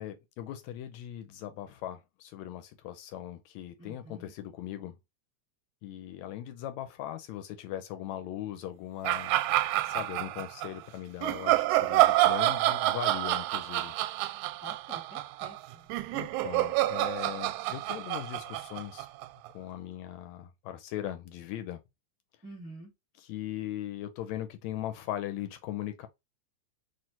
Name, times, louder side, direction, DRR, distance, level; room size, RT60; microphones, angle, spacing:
voice 1, 0.0-5.0 5.8-9.4 9.8-13.9 16.1-19.1 19.5-21.8 23.2-26.1, left 12 dB, 80° left, 1.8 m, -39 dB
voice 2, 3.8-4.3 14.6-15.9 22.4-22.9, right 1 dB, 20° right, 0.5 m, -48 dB
sound 1, 9.0-10.7 11.2-19.5, right 16 dB, 90° right, 2.0 m, -28 dB
4.1 x 3.2 x 2.7 m
omnidirectional pair, 3.4 m